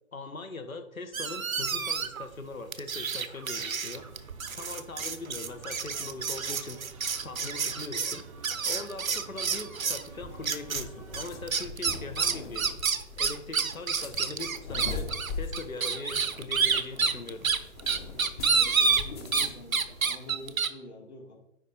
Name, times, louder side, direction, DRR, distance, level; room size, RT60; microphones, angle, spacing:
voice 1, 0.1-6.8 7.2-15.1 15.4-17.5, left 3 dB, 75° left, 9 dB, 1.2 m, -41 dB
sound 1, 1.1-2.3 2.7-10.1 10.4-10.8 11.1-19.5 19.7-20.7, right 5 dB, 75° right, 0.8 m, -29 dB
sound 2, 3.9-11.7, right 4 dB, 25° right, 0.6 m, -50 dB
sound 3, 9.8-20.1, left 4 dB, 30° left, 1.0 m, -41 dB
voice 2, 18.5-21.3, left 1 dB, 50° left, 1 dB, 2.2 m, -46 dB
10.0 x 3.9 x 4.4 m, 0.77 s
figure-of-eight pair, 130°, 41 cm